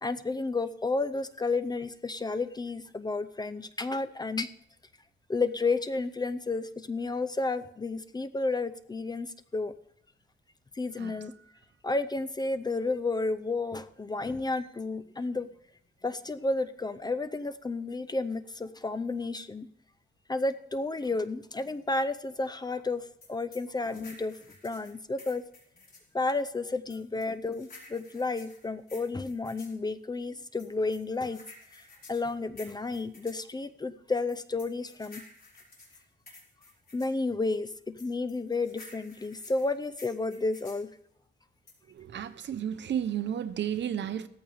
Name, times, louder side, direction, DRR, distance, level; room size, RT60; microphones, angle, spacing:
voice 1, 0.0-4.5 5.3-9.7 10.7-11.3 11.8-15.5 16.0-19.7 20.3-24.4 24.6-25.4 26.1-31.4 32.1-35.2 36.9-40.9, left 3 dB, 20° left, 12 dB, 0.5 m, -31 dB
voice 2, 11.0-11.3 41.9-44.3, right 9 dB, 60° right, 11 dB, 0.9 m, -33 dB
sound 1, 23.2-26.1 26.9-29.8 30.6-33.4 34.3-37.2 38.0-40.9 41.7-42.0, left 3 dB, 45° left, 4.4 m, -52 dB
16.5 x 14.0 x 3.5 m, 0.70 s
wide cardioid pair, 150°, 21 cm